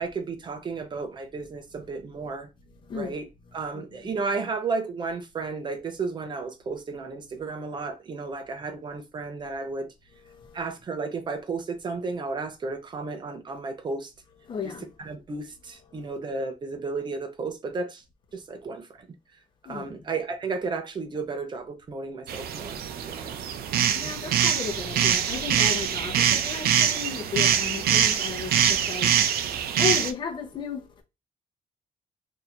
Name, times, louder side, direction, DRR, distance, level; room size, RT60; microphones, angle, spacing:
voice 1, 0.0-2.5 2.9-3.3 3.5-9.9 10.5-14.1 14.6-14.7 15.0-18.0 18.3-19.1 19.6-23.4 23.8-24.1, right 4 dB, 30° right, 0.6 m, -33 dB
voice 2, 2.8-3.2 3.8-3.9 10.2-10.7 14.5-15.2 15.7-16.0 19.6-20.0 23.9-29.5 29.8-31.0, left 6 dB, 30° left, 0.7 m, -34 dB
sound 1, 22.3-30.1, right 9 dB, 90° right, 0.5 m, -24 dB
2.7 x 2.6 x 4.3 m
cardioid pair, 175°, 15 cm